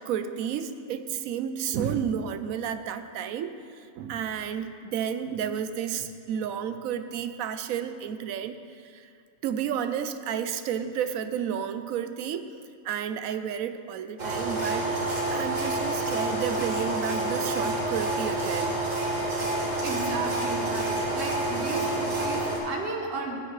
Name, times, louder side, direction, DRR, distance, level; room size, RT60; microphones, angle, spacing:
voice 1, 0.0-9.1 9.4-12.5 12.8-14.9 15.3-18.7, right 8 dB, 85° right, 10 dB, 1.0 m, -31 dB
sound 1, 14.2-22.6, right 2 dB, 70° right, 2.3 m, -28 dB
voice 2, 19.8-23.4, right 3 dB, 45° right, 0 dB, 1.5 m, -34 dB
15.0 x 10.0 x 3.2 m, 2.3 s
omnidirectional pair, 1.4 m